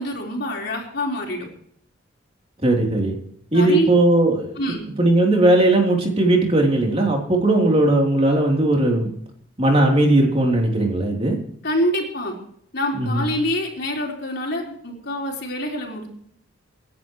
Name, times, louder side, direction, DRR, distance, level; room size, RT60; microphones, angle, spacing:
voice 1, 0.0-1.5 3.5-3.9 4.6-4.9 11.6-12.4 12.7-16.1, equal, 55° left, -1 dB, 4.5 m, -26 dB
voice 2, 2.6-3.1 3.5-4.6 5.0-9.1 9.6-11.4 12.9-13.3, right 1 dB, 30° right, 0 dB, 3.5 m, -18 dB
27.0 x 11.0 x 3.2 m, 0.66 s
head